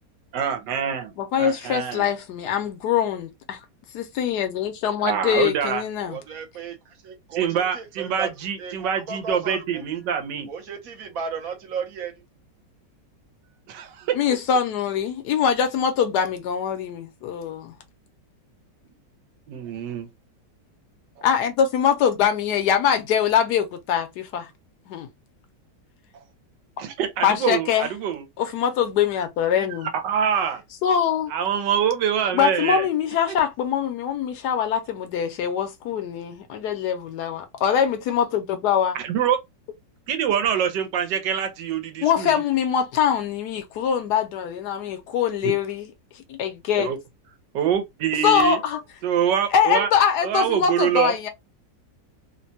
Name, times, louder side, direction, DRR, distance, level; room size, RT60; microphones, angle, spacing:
voice 1, 0.3-2.1 5.0-5.8 7.3-10.5 13.7-14.2 19.5-20.1 26.8-28.2 30.0-30.6 31.3-32.9 38.9-39.4 40.1-42.4 45.4-45.5 46.8-47.0 47.5-48.6 49.0-49.9 50.2-51.1, right 8 dB, 90° right, 1.4 m, -25 dB
voice 2, 1.2-3.6 3.9-6.2 14.1-17.7 21.2-24.5 24.9-25.1 27.2-27.9 28.4-29.9 30.8-31.3 32.3-39.0 42.0-45.9 46.3-46.9 48.2-48.8 49.5-51.3, left 8 dB, 75° left, 1.2 m, -23 dB
voice 3, 6.1-6.8 7.0-8.3 8.6-9.8 10.5-12.1, right 5 dB, 65° right, 0.9 m, -34 dB
3.3 x 2.2 x 2.6 m
omnidirectional pair, 1.9 m